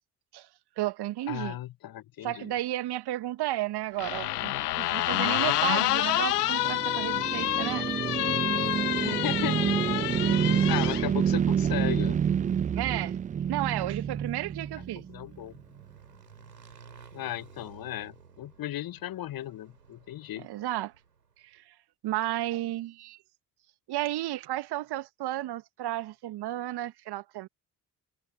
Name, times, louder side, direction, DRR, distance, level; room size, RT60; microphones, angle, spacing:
voice 1, 0.8-1.6 2.2-7.9 10.0-10.1 12.7-13.2 13.5-15.0 20.4-20.9 21.4-21.7 22.0-23.2 23.9-27.5, right 15 dB, 55° right, 1.8 m, -33 dB
voice 2, 1.3-2.5 8.9-9.8 10.1-12.2 15.1-15.6 17.1-20.5, left 13 dB, 50° left, 1.2 m, -36 dB
sound 1, 4.0-11.0, left 15 dB, 80° left, 1.6 m, -28 dB
sound 2, 6.1-15.4, right 8 dB, 20° right, 0.4 m, -28 dB
Motorcycle / Engine, 14.2-21.4, right 6 dB, 85° right, 5.2 m, -54 dB
figure-of-eight pair, 45°, 46 cm